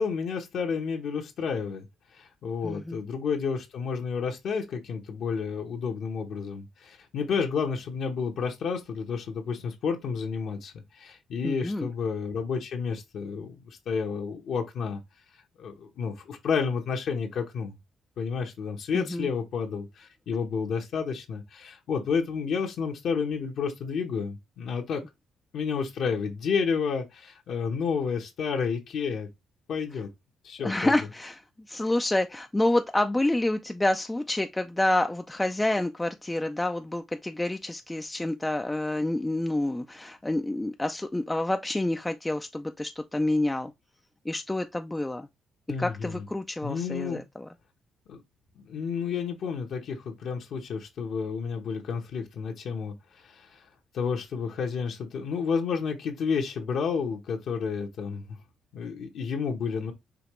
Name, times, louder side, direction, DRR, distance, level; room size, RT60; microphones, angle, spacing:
voice 1, 0.0-1.9 2.1-15.0 15.6-17.7 18.2-25.0 25.5-29.3 29.7-30.1 30.4-31.1 45.7-46.3 46.6-47.2 48.1-48.2 48.6-53.7 53.9-58.4 58.7-59.9, left 6 dB, 70° left, 0.9 m, -31 dB
voice 2, 2.6-3.0 11.4-11.9 18.9-19.3 30.6-31.4 31.7-43.7 44.3-45.3 45.8-47.5, left 1 dB, 10° left, 0.3 m, -28 dB
5.0 x 2.8 x 3.0 m
cardioid pair, 90°, 0 cm